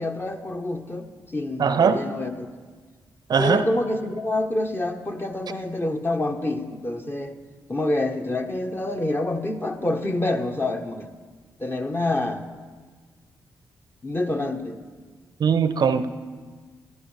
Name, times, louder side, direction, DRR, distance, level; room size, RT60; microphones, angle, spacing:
voice 1, 0.0-2.5 3.4-7.4 7.7-11.1 11.6-12.4 14.0-14.8, left 2 dB, 25° left, 4 dB, 1.2 m, -27 dB
voice 2, 1.6-2.0 3.3-3.6 15.4-16.1, right 6 dB, 60° right, 11 dB, 0.6 m, -20 dB
16.0 x 12.0 x 3.3 m, 1.5 s
supercardioid pair, 45°, 8 cm